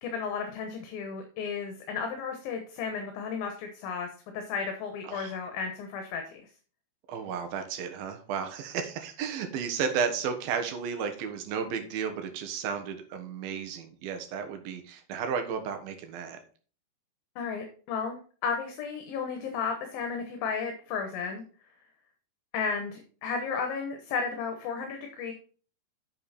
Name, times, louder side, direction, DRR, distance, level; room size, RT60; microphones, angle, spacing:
voice 1, 0.0-4.1 4.3-6.4 17.4-21.4 22.5-25.3, left 5 dB, 70° left, 5 dB, 2.8 m, -33 dB
voice 2, 7.1-16.4, right 6 dB, 70° right, 6 dB, 3.0 m, -33 dB
9.2 x 6.5 x 4.2 m, 0.40 s
omnidirectional pair, 4.5 m